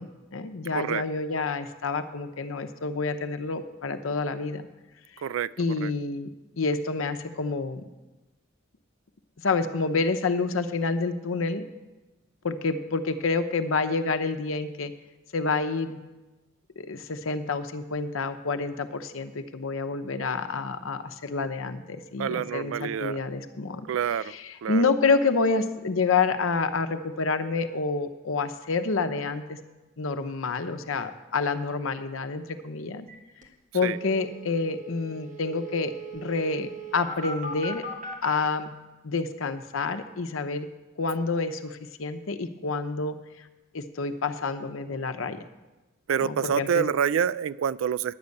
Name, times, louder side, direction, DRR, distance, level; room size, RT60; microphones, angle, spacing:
voice 1, 0.0-4.6 5.6-6.3 6.6-7.8 9.4-11.6 12.4-14.9 15.3-16.0 16.8-23.9 24.3-29.6 30.0-33.1 33.7-37.8 38.2-38.7 39.0-40.7 41.0-43.5 43.7-45.4 46.2-46.8, left 4 dB, 80° left, 9 dB, 0.8 m, -28 dB
voice 2, 0.7-1.0 5.2-5.9 22.2-23.2 23.9-24.3 24.6-24.8 33.8-34.0 46.1-48.1, right 8 dB, 75° right, 18 dB, 0.3 m, -27 dB
sound 1, 33.1-33.2 33.4-33.5 33.8-38.3, right 2 dB, 40° right, 1.4 m, -39 dB
10.5 x 6.5 x 8.3 m, 1.1 s
head